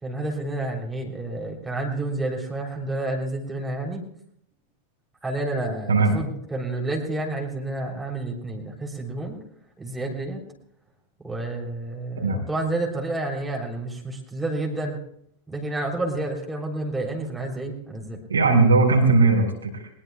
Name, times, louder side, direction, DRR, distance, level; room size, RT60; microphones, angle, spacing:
voice 1, 0.0-4.0 5.2-9.4 9.8-10.4 11.2-15.0 15.5-18.3, right 2 dB, 10° right, 0 dB, 3.3 m, -30 dB
voice 2, 18.3-19.9, right 3 dB, 75° right, 0 dB, 4.4 m, -18 dB
22.0 x 20.5 x 2.3 m, 0.70 s
figure-of-eight pair, 90°, 0 cm